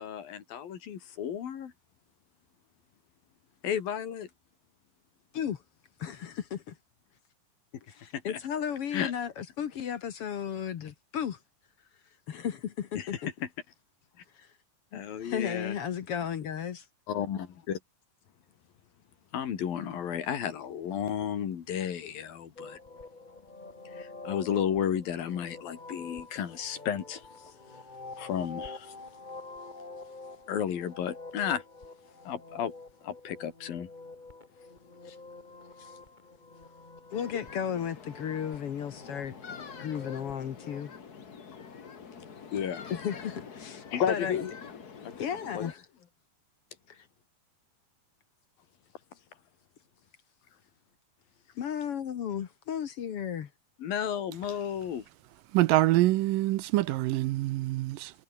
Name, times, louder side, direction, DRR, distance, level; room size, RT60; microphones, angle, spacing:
voice 1, 0.0-1.7 3.6-4.3 8.1-8.4 8.9-9.1 13.0-13.2 14.9-15.7 17.1-17.8 19.3-22.8 23.9-27.3 28.2-28.9 30.5-31.6 32.3-32.7 33.0-33.9 35.1-35.2 35.8-35.9 42.5-42.8 43.9-44.5 45.0-45.3 45.5-45.7 53.8-55.1, left 9 dB, 80° left, 4.3 m, -33 dB
voice 2, 6.0-6.8 7.9-11.4 12.3-13.3 14.4-14.5 14.9-16.9 37.1-39.3 39.8-40.9 42.9-44.5 45.2-45.8 46.9-47.1 51.6-53.5, left 8 dB, 55° left, 1.7 m, -34 dB
sound 1, 22.5-40.8, left 3 dB, 20° left, 1.5 m, -47 dB
sound 2, 37.1-45.7, left 6 dB, 35° left, 1.6 m, -46 dB
voice 3, 55.5-58.1, right 17 dB, 75° right, 2.3 m, -25 dB
omnidirectional pair, 4.1 m